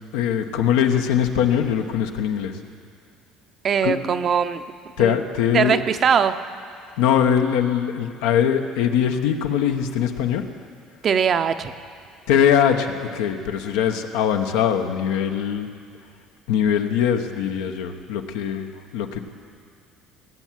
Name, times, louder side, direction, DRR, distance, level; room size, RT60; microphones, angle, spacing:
voice 1, 0.1-2.6 3.8-4.0 5.0-5.8 7.0-10.4 12.3-15.7 16.5-19.2, left 8 dB, 90° left, 5 dB, 1.0 m, -21 dB
voice 2, 3.6-4.6 5.0-5.2 5.5-6.3 11.0-11.7, right 7 dB, 45° right, 10 dB, 0.7 m, -21 dB
18.0 x 8.2 x 7.5 m, 2.3 s
supercardioid pair, 95°, 0 cm